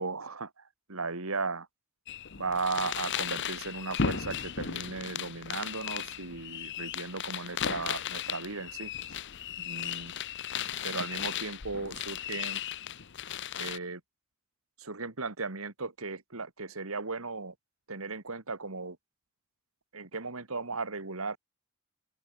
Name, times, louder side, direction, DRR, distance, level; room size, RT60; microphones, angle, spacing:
voice 1, 0.0-1.7 2.4-8.9 9.6-10.1 10.8-12.6 13.6-14.0 14.8-17.5 17.9-19.0 19.9-21.4, right 4 dB, 75° right, 2.3 m, -36 dB
sound 1, 2.1-13.8, left 8 dB, 55° left, 0.9 m, -36 dB
open air
head